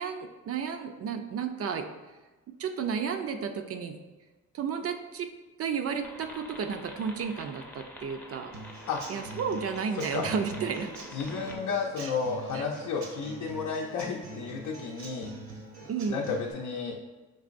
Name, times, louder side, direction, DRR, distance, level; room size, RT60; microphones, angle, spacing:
voice 1, 0.0-1.9 2.6-4.0 4.5-5.3 5.6-8.5 9.1-10.9 12.0-12.1 12.5-12.6 15.9-16.4, right 6 dB, 50° right, 7 dB, 0.4 m, -32 dB
sound 1, 6.0-11.6, left 1 dB, 5° left, 0.5 m, -47 dB
Human voice / Acoustic guitar / Drum, 8.5-16.5, right 2 dB, 65° right, 0.8 m, -44 dB
voice 2, 10.0-10.3 11.1-15.3 15.8-17.0, left 5 dB, 70° left, -1 dB, 0.5 m, -32 dB
5.4 x 2.9 x 2.5 m, 1.2 s
cardioid pair, 90°, 30 cm